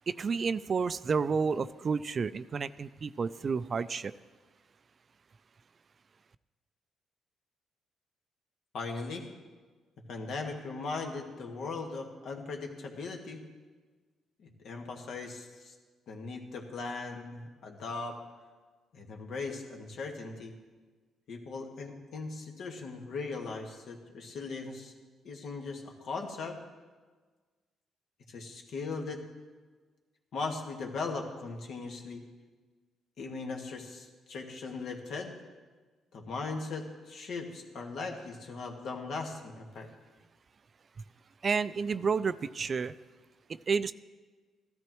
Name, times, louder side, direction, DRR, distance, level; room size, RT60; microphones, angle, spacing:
voice 1, 0.1-4.1 41.4-42.9 43.7-43.9, right 5 dB, 40° right, 14 dB, 0.4 m, -30 dB
voice 2, 8.7-9.2 10.1-13.4 14.6-15.7 16.1-18.2 18.9-20.5 21.3-24.9 25.2-26.6 28.3-29.2 30.3-32.2 33.2-35.3 36.1-39.9, left 4 dB, 70° left, 1 dB, 1.7 m, -39 dB
15.5 x 13.0 x 3.1 m, 1.4 s
cardioid pair, 90°, 0 cm